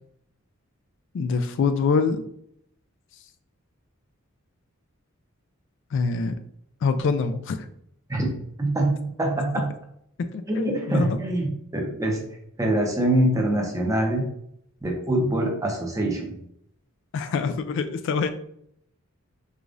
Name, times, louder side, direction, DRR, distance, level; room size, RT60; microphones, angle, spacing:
voice 1, 1.1-2.2 5.9-6.3 6.8-7.7 10.3-11.1 17.1-18.3, left 5 dB, 60° left, 9 dB, 0.3 m, -25 dB
voice 2, 8.6-9.7 10.5-12.2 12.6-14.3 14.8-16.4, right 1 dB, 15° right, 0 dB, 0.7 m, -24 dB
4.9 x 2.4 x 2.5 m, 0.71 s
head